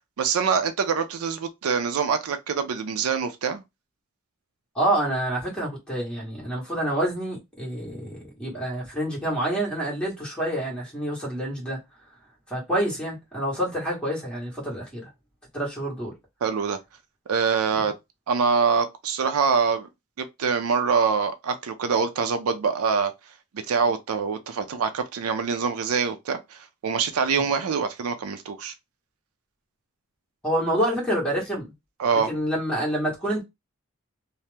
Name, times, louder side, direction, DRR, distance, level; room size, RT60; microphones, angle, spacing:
voice 1, 0.2-3.6 16.4-16.8 17.3-17.9 18.3-19.9 20.2-23.1 23.7-28.7 32.0-32.3, right 5 dB, 90° right, 0.4 m, -24 dB
voice 2, 4.7-11.8 12.5-15.1 15.5-16.1 27.3-27.4 30.4-31.7 32.3-33.4, right 1 dB, 5° left, 1.3 m, -27 dB
2.8 x 2.0 x 3.3 m
head